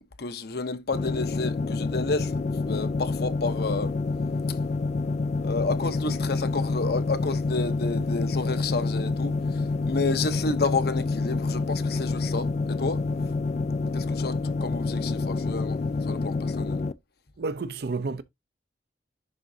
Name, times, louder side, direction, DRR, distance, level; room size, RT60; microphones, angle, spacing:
voice 1, 0.2-2.4 2.6-3.9 4.5-4.6 5.4-13.0 13.9-16.8, left 3 dB, 60° left, 0.8 m, -30 dB
sound 1, 0.9-16.9, left 3 dB, 40° left, 0.4 m, -28 dB
voice 2, 17.4-18.2, right 3 dB, 60° right, 0.5 m, -30 dB
10.5 x 3.7 x 2.7 m
head